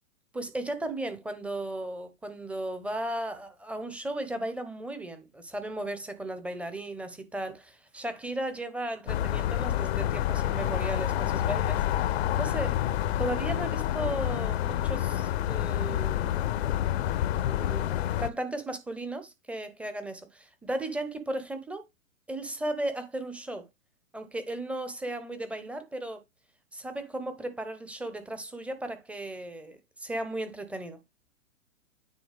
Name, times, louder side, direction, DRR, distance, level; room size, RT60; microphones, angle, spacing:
voice 1, 0.3-12.8 13.2-16.5 17.3-21.8 22.3-23.7 24.1-26.2 26.7-31.0, right 1 dB, 5° right, 0.8 m, -36 dB
sound 1, 9.1-18.3, left 12 dB, 50° left, 0.7 m, -28 dB
9.3 x 4.3 x 3.4 m
hypercardioid pair, 130°, 41 cm